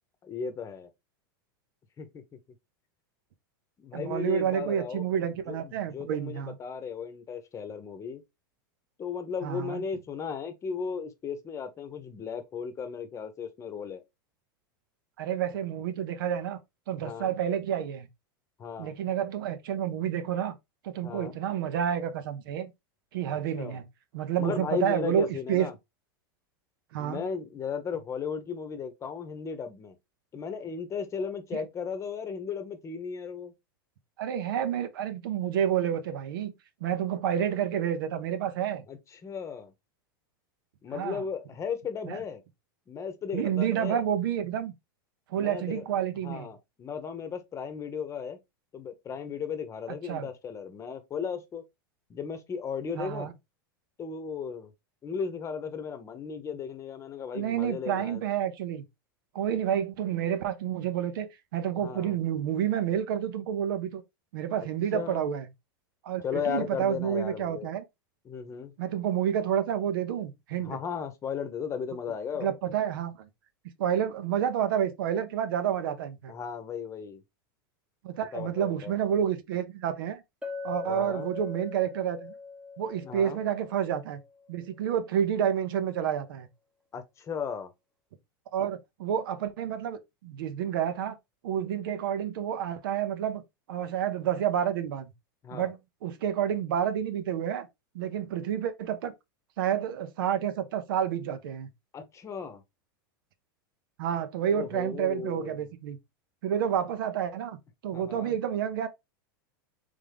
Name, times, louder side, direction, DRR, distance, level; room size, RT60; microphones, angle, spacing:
voice 1, 0.2-0.9 2.0-2.2 3.8-5.1 5.5-8.2 9.0-14.0 17.0-17.3 18.6-18.9 21.0-21.4 23.5-23.8 24.4-25.7 27.0-30.0 30.3-33.5 38.9-39.7 40.8-42.4 42.9-44.0 45.3-45.8 46.2-48.4 48.7-51.6 52.1-53.3 54.0-54.7 55.0-58.3 61.8-62.1 64.6-64.7 64.9-65.3 66.2-67.7 68.2-68.7 70.6-72.5 76.3-77.2 78.3-78.9 80.8-81.3 83.0-83.4 86.9-87.7 95.4-95.7 101.9-102.6 104.5-105.7 107.9-108.3, left 6 dB, 25° left, 0.9 m, -36 dB
voice 2, 3.9-6.6 9.4-9.8 15.2-16.6 16.9-18.1 18.8-20.5 20.8-22.7 23.1-23.8 24.1-25.7 26.9-27.2 31.5-31.6 34.2-36.5 36.8-38.8 40.9-41.2 42.0-42.2 43.3-44.7 45.3-46.5 49.9-50.3 53.0-53.3 57.3-58.8 59.3-64.0 64.3-65.5 66.0-67.8 68.8-70.8 72.4-73.3 73.8-76.3 78.0-80.2 80.6-82.3 82.8-84.2 84.5-86.5 88.5-91.2 91.4-93.4 93.7-95.1 95.5-97.7 97.9-99.1 99.6-101.7 104.0-106.0 106.4-107.6 107.8-108.9, right 9 dB, 75° right, 0.7 m, -29 dB
Chink clink, 80.4-84.4, left 4 dB, 5° right, 0.8 m, -41 dB
3.6 x 3.6 x 3.4 m
hypercardioid pair, 115°, 12 cm